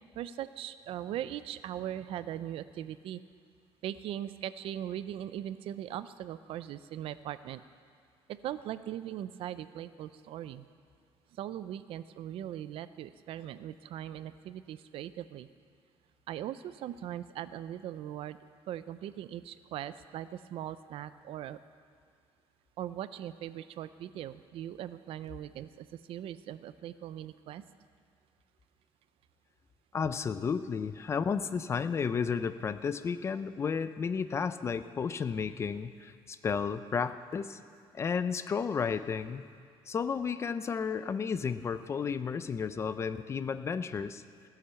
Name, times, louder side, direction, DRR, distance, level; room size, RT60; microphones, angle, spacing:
voice 1, 0.1-3.2 3.8-7.6 8.4-10.6 11.4-15.5 16.3-18.4 18.7-21.6 22.8-27.6, right 11 dB, 65° right, 14 dB, 0.5 m, -40 dB
voice 2, 29.9-37.6 37.9-39.4 39.9-44.2, left 6 dB, 25° left, 12 dB, 0.4 m, -32 dB
16.0 x 10.0 x 7.0 m, 2.2 s
cardioid pair, 170°, 10 cm